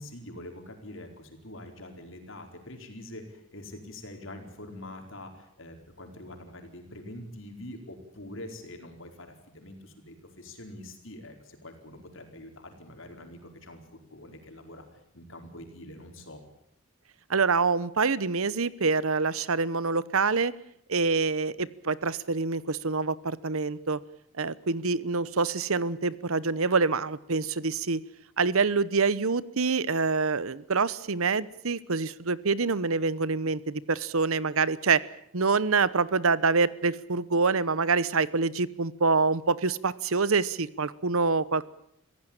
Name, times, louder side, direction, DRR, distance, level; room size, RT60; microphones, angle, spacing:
voice 1, 0.0-16.4, left 1 dB, 55° left, 4 dB, 4.7 m, -45 dB
voice 2, 17.3-20.5 20.9-24.0 24.4-28.0 28.4-35.0 35.3-41.7, right 4 dB, 70° right, 18 dB, 0.9 m, -26 dB
25.5 x 16.0 x 8.9 m, 0.73 s
head